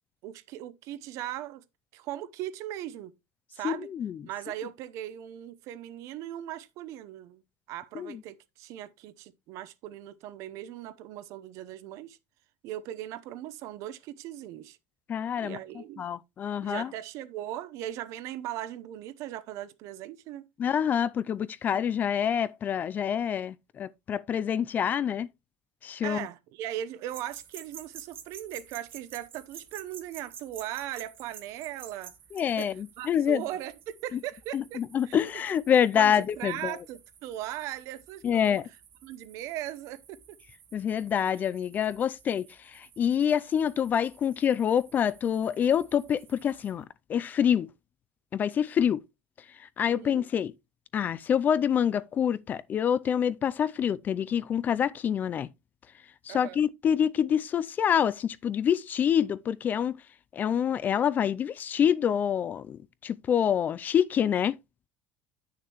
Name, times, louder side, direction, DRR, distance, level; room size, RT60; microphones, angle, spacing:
voice 1, 0.2-1.6 1.9-3.1 3.5-3.9 4.2-7.4 7.7-12.2 12.6-14.8 15.4-16.1 16.6-20.4 26.0-32.1 32.6-35.2 35.9-38.6 39.0-40.4 49.8-50.2 56.3-56.6, right 12 dB, 55° right, 0.8 m, -39 dB
voice 2, 3.6-4.2 8.0-8.2 15.1-15.6 16.0-16.9 20.6-25.3 25.8-26.3 32.3-33.4 34.1-34.2 34.5-36.8 38.2-38.6 40.7-46.8 47.1-47.7 48.3-49.0 49.8-50.5 50.9-55.5 56.3-60.0 60.3-64.6, left 8 dB, 30° left, 0.3 m, -26 dB
sound 1, 27.1-46.8, right 8 dB, 35° right, 1.2 m, -51 dB
8.7 x 6.6 x 3.0 m
cardioid pair, 140°, 6 cm